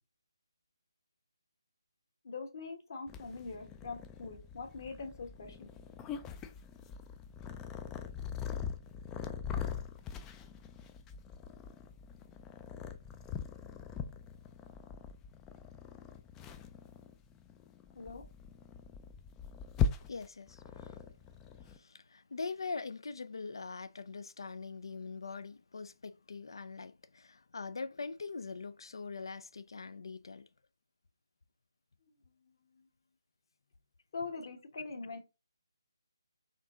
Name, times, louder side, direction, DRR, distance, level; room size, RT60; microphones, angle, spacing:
voice 1, 2.2-5.7 17.9-18.2 32.7-32.8 34.1-35.2, left 4 dB, 45° left, 1.3 m, -43 dB
Purr, 3.1-21.8, left 6 dB, 10° left, 0.3 m, -41 dB
voice 2, 20.1-21.0 21.7-30.5, left 4 dB, 70° left, 0.5 m, -43 dB
4.4 x 2.9 x 3.9 m
figure-of-eight pair, 155°, 3 cm